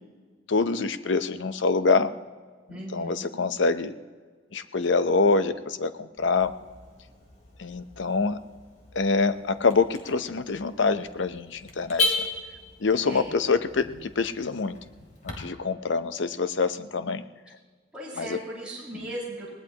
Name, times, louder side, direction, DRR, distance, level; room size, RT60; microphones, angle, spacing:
voice 1, 0.5-2.1 2.9-3.9 4.5-6.5 7.6-8.4 8.9-12.1 12.8-14.8 15.2-17.2 18.2-18.4, left 4 dB, 70° left, 11 dB, 0.7 m, -25 dB
voice 2, 2.7-3.3 13.0-13.4 17.9-19.5, right 1 dB, 5° right, -8 dB, 4.9 m, -37 dB
Car / Alarm, 6.2-15.3, left 3 dB, 40° left, 3.0 m, -36 dB
20.0 x 18.5 x 2.9 m, 1.5 s
head